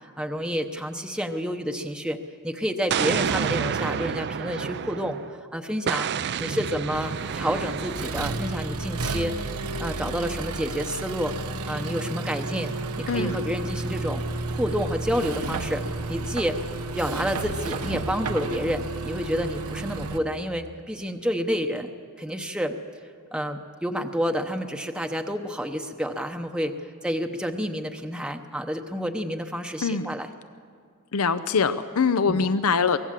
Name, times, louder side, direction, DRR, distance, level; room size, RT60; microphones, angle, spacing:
voice 1, 0.0-2.2 2.4-5.2 5.5-6.1 6.4-9.4 9.8-11.3 11.7-14.2 14.5-15.8 16.1-16.6 16.9-21.9 22.2-22.8 23.3-26.7 27.0-30.3 32.3-32.5, equal, 5° right, 4 dB, 0.8 m, -29 dB
Explosion, 2.9-5.3 5.9-8.4, right 7 dB, 50° right, 0.5 m, -29 dB
Accelerating revving vroom, 6.9-20.2, right 2 dB, 90° right, 1.1 m, -32 dB
voice 2, 31.1-33.0, left 5 dB, 70° left, 12 dB, 0.6 m, -23 dB
24.0 x 17.5 x 7.5 m, 2.2 s
head